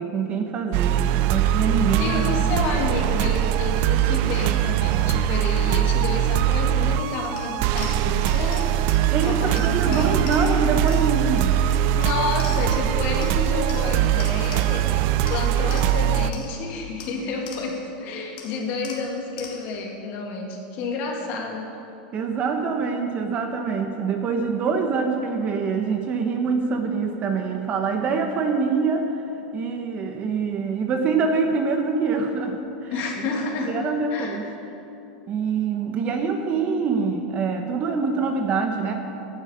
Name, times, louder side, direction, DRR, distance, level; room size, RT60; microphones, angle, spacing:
voice 1, 0.0-2.7 9.1-11.6 22.1-29.2 29.5-33.3 33.6-34.5 35.3-38.9, right 5 dB, 30° right, 4 dB, 1.0 m, -25 dB
sound 1, 0.7-16.3, right 11 dB, 45° right, 0.4 m, -22 dB
voice 2, 2.0-8.6 9.2-10.1 11.9-21.7 32.9-33.7 34.1-34.4, left 3 dB, 40° left, 1 dB, 2.4 m, -30 dB
sound 2, 7.4-12.9 13.2-14.9 15.3-18.0 18.4-19.9, left 6 dB, 60° left, 2.1 m, -43 dB
15.5 x 11.5 x 5.1 m, 2.8 s
supercardioid pair, 160°, 5 cm